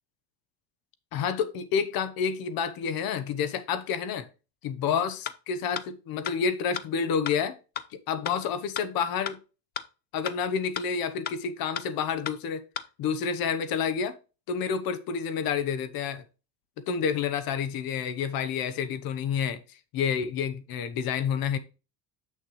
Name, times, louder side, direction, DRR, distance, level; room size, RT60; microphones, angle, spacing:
voice 1, 1.1-4.3 4.6-7.6 8.1-9.4 10.1-12.6 13.0-14.2 14.5-16.2 16.9-19.6 19.9-21.6, left 7 dB, 55° left, 1.1 m, -29 dB
sound 1, 5.2-5.3 5.7-5.8 6.3-6.4 6.8-6.9 7.3-7.4 7.8-7.9 8.2-8.3 8.7-8.8 9.3-9.4 9.8-9.9 10.3-10.4 10.7-10.8 11.2-11.4 11.7-11.8 12.3-12.4 12.8-12.9, left 9 dB, 25° left, 0.3 m, -32 dB
7.4 x 6.5 x 3.2 m
cardioid pair, 170°, 43 cm